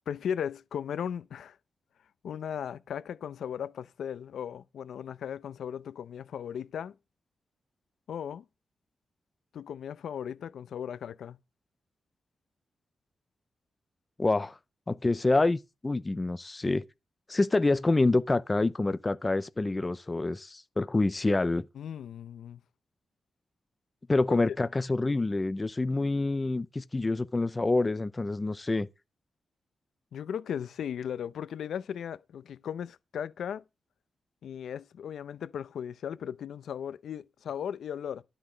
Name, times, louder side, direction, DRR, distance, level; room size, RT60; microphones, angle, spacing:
voice 1, 0.1-1.6 2.2-7.0 8.1-8.4 9.5-11.4 21.8-22.6 30.1-33.6 34.4-38.2, left 8 dB, 80° left, 0.5 m, -37 dB
voice 2, 14.2-14.6 14.9-16.8 17.3-21.7 24.1-28.9, left 2 dB, 15° left, 0.5 m, -27 dB
12.5 x 6.0 x 5.0 m
wide cardioid pair, 175°, 0 cm